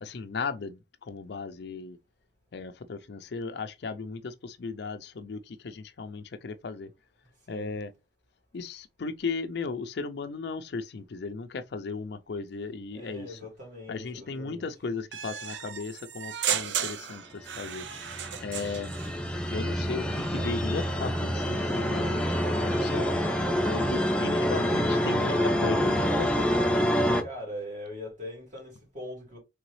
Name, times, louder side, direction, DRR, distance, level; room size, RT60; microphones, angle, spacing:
voice 1, 0.0-2.0 2.5-6.9 7.5-7.9 8.5-13.4 13.9-17.9 18.4-18.9 19.5-23.3 23.6-26.4, left 4 dB, 65° left, 0.5 m, -36 dB
voice 2, 7.4-7.8 12.9-14.9 26.2-26.9 27.2-29.4, equal, 45° right, 2.7 m, -42 dB
sound 1, 15.1-19.1, right 9 dB, 85° right, 0.5 m, -34 dB
sound 2, 17.5-27.2, equal, 5° left, 0.5 m, -27 dB
3.8 x 3.4 x 3.1 m
head